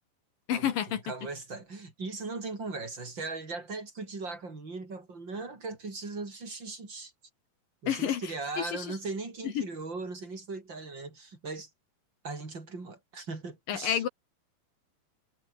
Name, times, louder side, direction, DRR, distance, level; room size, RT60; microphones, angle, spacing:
voice 1, 0.5-1.0 7.9-8.2 8.6-9.0 9.6-9.7 13.7-14.1, left 10 dB, 75° left, 3.4 m, -29 dB
voice 2, 1.0-7.1 7.8-11.7 12.2-14.0, right 3 dB, 30° right, 5.7 m, -38 dB
omnidirectional pair, 4.0 m